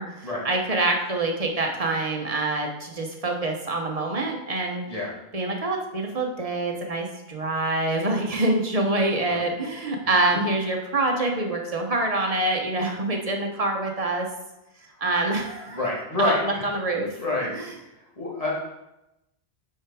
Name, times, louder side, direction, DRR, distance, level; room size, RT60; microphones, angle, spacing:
voice 1, 0.0-4.8 5.3-14.3 15.0-15.8 16.3-17.1 17.5-17.7, right 2 dB, 35° right, 2 dB, 1.0 m, -26 dB
voice 2, 10.0-10.5 15.7-16.7 17.2-17.5 18.2-18.5, left 2 dB, 35° left, -5 dB, 1.9 m, -27 dB
6.3 x 4.7 x 4.8 m, 0.91 s
omnidirectional pair, 1.1 m